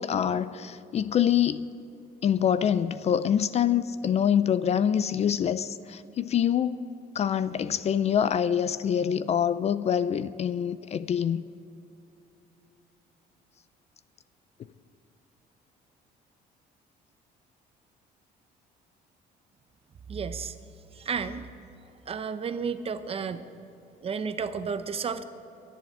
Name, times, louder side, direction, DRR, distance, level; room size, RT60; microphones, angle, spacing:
voice 1, 0.0-1.6 2.2-6.9 7.1-11.4, left 9 dB, 40° left, 0.4 m, -25 dB
voice 2, 20.1-20.5 21.0-21.5 22.1-23.4 24.0-25.2, right 6 dB, 35° right, 0.8 m, -32 dB
11.5 x 10.5 x 8.5 m
cardioid pair, 110°, 17 cm